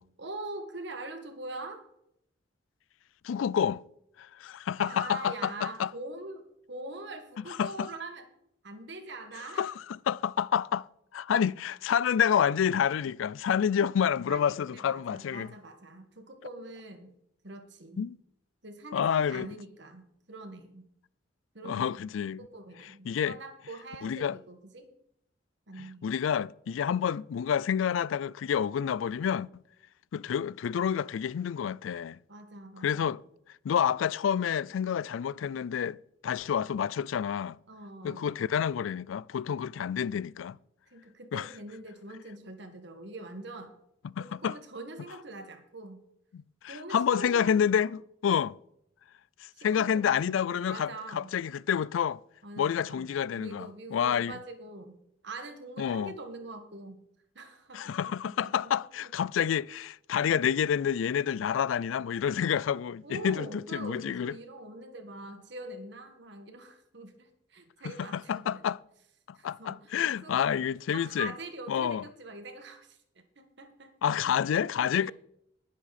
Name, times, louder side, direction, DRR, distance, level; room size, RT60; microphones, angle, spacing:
voice 1, 0.2-1.8 4.8-8.3 8.6-9.7 14.3-17.1 17.4-18.1 18.6-20.8 21.5-22.0 22.4-24.9 25.7-26.1 32.3-33.2 37.7-38.3 40.9-43.7 44.2-46.0 46.7-47.9 49.5-51.3 52.4-53.1 53.4-55.0 55.2-57.0 57.4-58.7 59.4-59.5 63.0-68.6 69.4-70.6 70.9-73.0 73.4-74.3 74.6-75.1, right 2 dB, 65° right, 1.7 m, -44 dB
voice 2, 3.2-3.8 4.2-5.9 7.6-7.9 9.6-9.7 10.1-10.8 11.1-15.5 18.0-18.2 18.9-19.5 21.6-22.4 23.1-23.4 24.0-24.3 26.0-29.5 30.1-32.2 32.8-33.2 33.6-36.0 36.2-37.6 38.0-40.6 41.3-41.5 44.0-44.5 46.3-48.5 49.6-52.2 52.6-54.4 55.8-56.1 57.7-63.5 63.7-64.3 68.1-68.8 69.4-71.3 71.7-72.0 74.0-75.1, left 8 dB, 85° left, 0.3 m, -28 dB
20.5 x 7.4 x 4.2 m
head